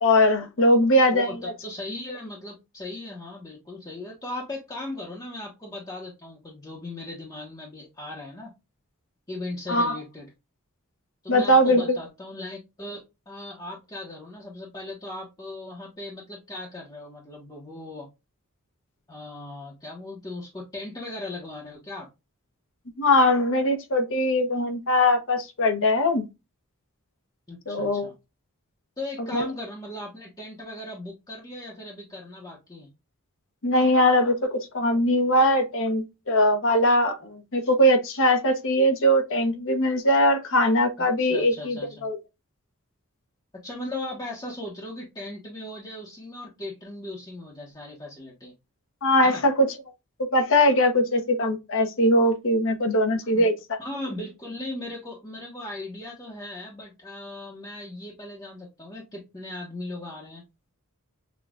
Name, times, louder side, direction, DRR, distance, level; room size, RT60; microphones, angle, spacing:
voice 1, 0.0-1.5 9.7-10.0 11.3-12.0 23.0-26.2 27.7-28.1 29.3-29.5 33.6-42.2 49.0-49.7 50.2-53.8, left 1 dB, 60° left, 0.9 m, -21 dB
voice 2, 1.1-8.5 9.3-10.3 11.2-18.1 19.1-22.1 27.5-28.1 29.0-32.9 41.2-42.0 43.6-48.5 49.2-49.4 53.3-53.4 53.8-60.4, left 2 dB, 20° left, 1.0 m, -38 dB
6.1 x 2.4 x 2.4 m
head